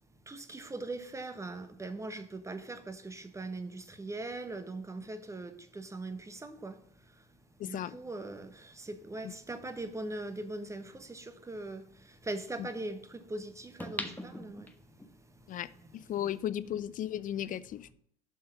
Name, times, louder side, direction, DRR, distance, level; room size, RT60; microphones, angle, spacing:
voice 1, 0.2-16.1 16.7-16.8, right 2 dB, 15° right, 1.2 m, -41 dB
voice 2, 7.6-8.0 9.2-9.3 12.6-12.7 15.5-17.9, left 11 dB, 40° left, 0.5 m, -36 dB
sound 1, 13.8-15.1 15.6-15.7, left 1 dB, 10° left, 1.1 m, -40 dB
7.7 x 5.5 x 5.6 m
hypercardioid pair, 75°, 21 cm